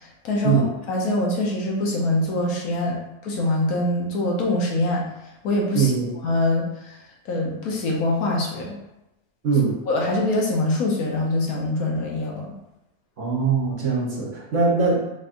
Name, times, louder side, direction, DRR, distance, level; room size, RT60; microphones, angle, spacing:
voice 1, 0.0-3.0 3.2-5.0 5.4-5.9 6.2-7.0 7.2-8.8 9.9-12.5, left 2 dB, 70° left, -2 dB, 1.2 m, -24 dB
voice 2, 5.7-6.1 9.4-9.8 13.2-15.0, right 5 dB, 55° right, -3 dB, 1.1 m, -21 dB
4.0 x 3.5 x 2.5 m, 0.92 s
omnidirectional pair, 1.7 m